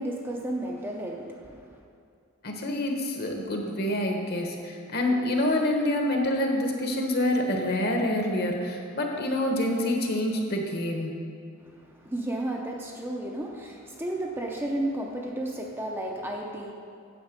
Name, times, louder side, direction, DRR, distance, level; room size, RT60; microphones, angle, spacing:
voice 1, 0.0-1.8 11.6-16.7, right 1 dB, 10° right, 0 dB, 0.6 m, -33 dB
voice 2, 2.4-11.1, left 1 dB, 45° left, 2 dB, 1.1 m, -27 dB
8.9 x 7.1 x 5.1 m, 2.4 s
head